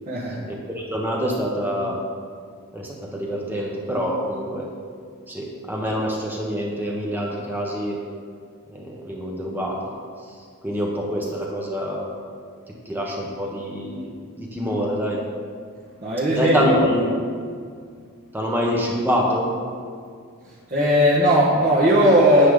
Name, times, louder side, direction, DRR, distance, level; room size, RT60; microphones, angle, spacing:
voice 1, 0.1-0.4 16.0-16.9 20.7-22.5, equal, 40° right, -7 dB, 1.4 m, -17 dB
voice 2, 0.7-2.0 2.7-4.7 5.3-8.0 8.7-9.8 10.6-12.0 12.7-14.1 14.4-15.2 16.3-17.1 18.3-19.5, equal, 10° right, -2 dB, 1.1 m, -25 dB
9.9 x 8.4 x 3.8 m, 2.1 s
head